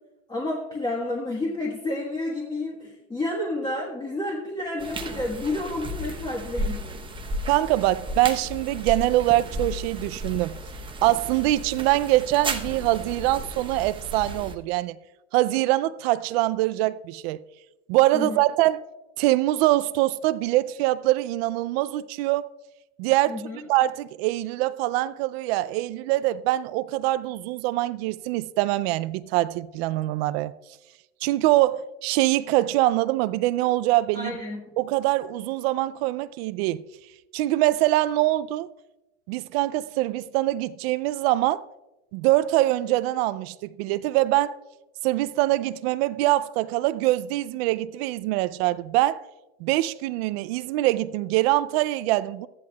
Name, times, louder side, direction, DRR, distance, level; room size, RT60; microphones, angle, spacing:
voice 1, 0.3-7.0 18.1-18.4 23.3-23.6 34.1-34.6, left 2 dB, 10° left, 1.4 m, -30 dB
sound 1, 4.8-14.5, right 1 dB, 15° right, 0.9 m, -34 dB
voice 2, 7.4-10.6 11.0-15.0 15.3-17.4 17.9-18.8 19.2-22.5 23.0-30.5 31.2-34.4 34.8-36.8 37.3-38.7 39.3-41.6 42.1-44.6 45.0-49.2 49.6-52.5, right 16 dB, 60° right, 0.5 m, -24 dB
14.5 x 11.0 x 2.3 m
supercardioid pair, 120°, 36 cm